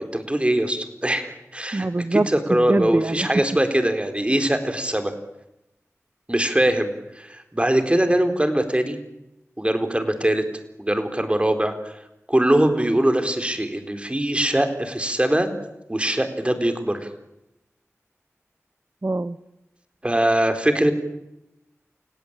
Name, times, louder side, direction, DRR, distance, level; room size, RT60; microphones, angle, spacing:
voice 1, 0.0-5.1 6.3-9.0 9.6-10.4 10.8-11.7 12.3-15.5 15.9-17.1 20.0-20.9, right 1 dB, 20° right, 8 dB, 4.1 m, -22 dB
voice 2, 1.7-3.4 19.0-19.4, right 2 dB, 40° right, 14 dB, 0.9 m, -24 dB
29.5 x 17.0 x 8.9 m, 0.89 s
wide cardioid pair, 40°, 5 cm